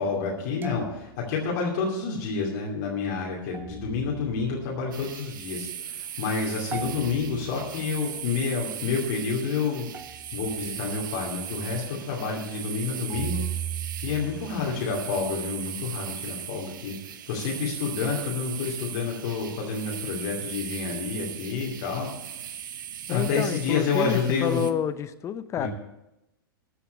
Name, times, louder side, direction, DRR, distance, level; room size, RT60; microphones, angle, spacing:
voice 1, 0.0-9.9 10.3-13.4 14.0-17.0 17.3-22.1 23.1-24.6 25.6-25.7, left 5 dB, 50° left, -3 dB, 2.6 m, -29 dB
sound 1, 0.6-1.5 3.5-5.1 6.7-8.0 9.9-11.0 13.1-15.2, right 10 dB, 15° right, 0.5 m, -38 dB
sound 2, 4.9-24.7, right 10 dB, 60° right, 0.8 m, -38 dB
voice 2, 23.1-25.7, left 8 dB, 25° left, 12 dB, 0.7 m, -29 dB
13.5 x 5.7 x 8.3 m, 0.92 s
figure-of-eight pair, 100°, 12 cm